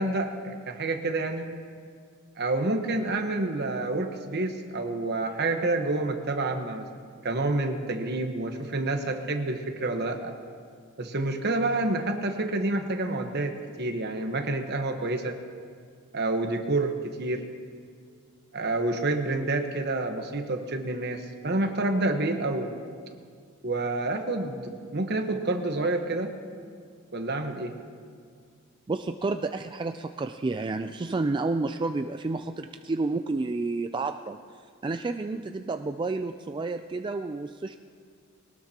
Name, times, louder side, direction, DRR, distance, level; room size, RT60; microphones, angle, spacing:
voice 1, 0.0-1.5 2.4-6.9 7.2-10.3 11.0-15.4 16.1-17.4 18.5-22.7 23.6-26.3 27.1-27.7, right 2 dB, 55° right, 6 dB, 1.2 m, -28 dB
voice 2, 28.9-34.4 34.8-37.8, right 3 dB, 25° right, 7 dB, 0.3 m, -30 dB
21.5 x 18.5 x 2.9 m, 2.1 s
head